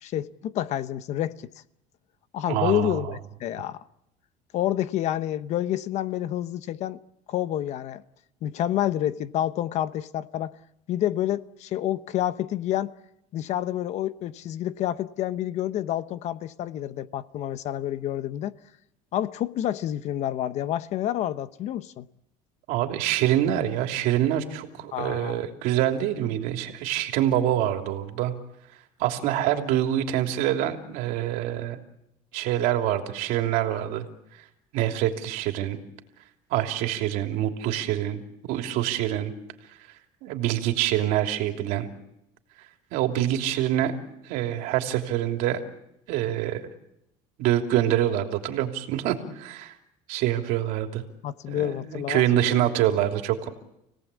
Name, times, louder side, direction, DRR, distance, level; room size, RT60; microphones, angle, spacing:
voice 1, 0.0-1.5 2.3-3.8 4.5-7.0 7.3-8.0 8.4-10.6 10.9-12.9 13.3-18.5 19.1-22.1 24.9-25.5 51.2-52.7, left 12 dB, 50° left, 1.0 m, -28 dB
voice 2, 2.5-3.0 22.7-28.3 29.0-31.8 32.3-34.1 34.7-35.8 36.5-39.3 40.2-41.9 42.9-43.9 44.2-45.6 46.1-46.7 47.4-49.7 50.1-51.0 51.5-53.5, right 12 dB, 75° right, 3.2 m, -25 dB
29.0 x 18.0 x 8.5 m
cardioid pair, 150°, 15 cm